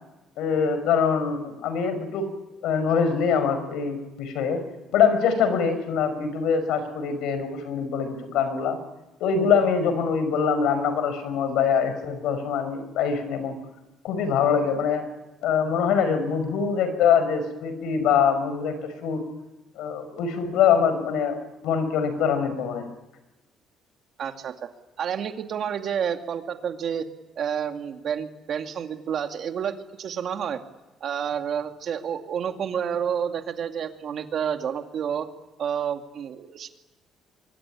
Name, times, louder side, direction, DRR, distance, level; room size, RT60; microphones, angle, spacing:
voice 1, 0.4-2.3 2.6-4.6 4.9-8.8 9.2-13.6 14.0-15.1 15.4-19.2 19.8-22.9, left 6 dB, 85° left, 10 dB, 5.6 m, -24 dB
voice 2, 24.2-24.7 25.0-27.1 27.4-30.6 31.0-35.3 35.6-36.7, right 8 dB, 45° right, 6 dB, 2.3 m, -29 dB
25.0 x 24.0 x 10.0 m, 1.1 s
cardioid pair, 160°, 0 cm